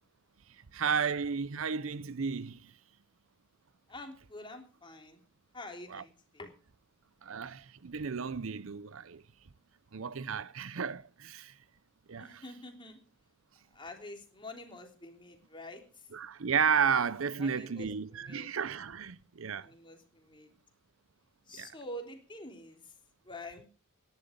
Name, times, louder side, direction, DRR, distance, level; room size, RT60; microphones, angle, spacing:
voice 1, 0.7-2.7 5.9-6.0 7.2-9.2 9.9-11.5 12.1-12.4 16.1-19.7 21.6-21.7, right 6 dB, 70° right, 0.6 m, -33 dB
voice 2, 3.9-5.2 5.5-6.5 12.2-13.0 13.7-15.8 17.4-18.5 19.6-20.5 21.5-22.9 23.3-23.6, left 1 dB, 25° left, 3.5 m, -47 dB
17.5 x 11.5 x 5.2 m
head